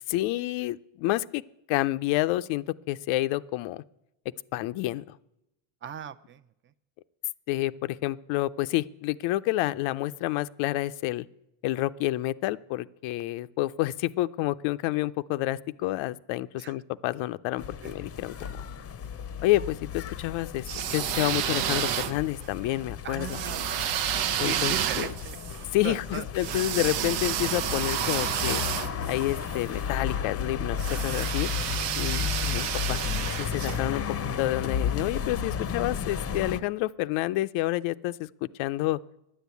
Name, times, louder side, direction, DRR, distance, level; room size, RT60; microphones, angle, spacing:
voice 1, 0.0-1.4 1.7-3.8 4.5-5.2 7.5-11.3 11.6-18.5 19.4-20.6 20.9-23.4 24.4-25.1 25.7-28.6 29.1-31.5 31.9-33.0 33.4-34.0 34.4-39.0, left 16 dB, 85° left, 13 dB, 0.6 m, -29 dB
voice 2, 5.8-6.7 16.6-16.7 17.8-18.0 23.0-23.9 24.2-26.3, right 8 dB, 25° right, 13 dB, 0.5 m, -39 dB
sound 1, 17.6-36.6, left 7 dB, 30° left, 0.6 m, -34 dB
sound 2, 20.6-22.5 23.3-29.6 30.8-33.8, right 10 dB, 70° right, 0.8 m, -30 dB
10.0 x 9.8 x 8.2 m, 0.85 s
cardioid pair, 110°, 46 cm